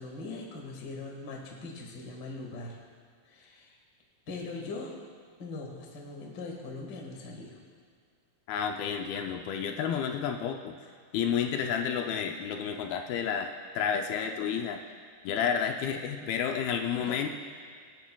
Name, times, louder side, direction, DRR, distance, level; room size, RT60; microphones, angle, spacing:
voice 1, 0.0-2.8 3.2-3.7 4.3-4.9 5.4-7.6 16.9-17.2, left 3 dB, 50° left, -1 dB, 1.3 m, -41 dB
voice 2, 8.5-10.7 11.1-14.8 15.2-17.3, left 7 dB, 80° left, 4 dB, 2.4 m, -30 dB
24.0 x 9.2 x 2.3 m, 2.2 s
omnidirectional pair, 4.5 m